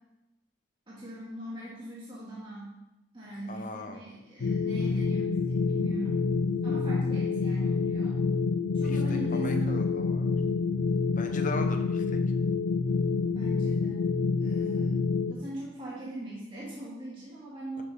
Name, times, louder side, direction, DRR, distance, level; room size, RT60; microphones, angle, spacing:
voice 1, 0.9-2.8 3.1-6.2 6.6-8.1 8.7-10.0 13.3-14.1 14.4-15.0 15.3-17.8, right 1 dB, 25° right, -8 dB, 2.2 m, -40 dB
voice 2, 3.5-4.0 8.8-10.4 11.2-12.2 17.8-17.9, left 2 dB, 45° left, 5 dB, 1.0 m, -39 dB
sound 1, 4.4-15.3, left 4 dB, 85° left, 0.5 m, -27 dB
11.5 x 6.8 x 3.6 m, 0.96 s
head